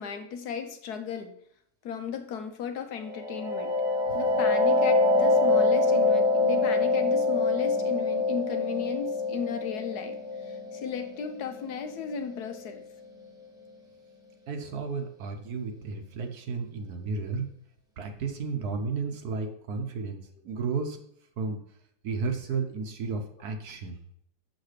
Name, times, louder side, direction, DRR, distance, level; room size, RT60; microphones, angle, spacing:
voice 1, 0.0-1.4 1.8-3.8 4.1-12.8 22.5-22.6, left 7 dB, 70° left, 7 dB, 1.2 m, -35 dB
sound 1, 3.1-12.5, left 3 dB, 5° right, 0.8 m, -25 dB
voice 2, 14.5-17.5 18.0-20.2 20.4-21.0 21.4-21.6 22.0-24.0, right 4 dB, 65° right, 5 dB, 1.3 m, -33 dB
7.2 x 6.4 x 3.3 m, 0.70 s
omnidirectional pair, 1.9 m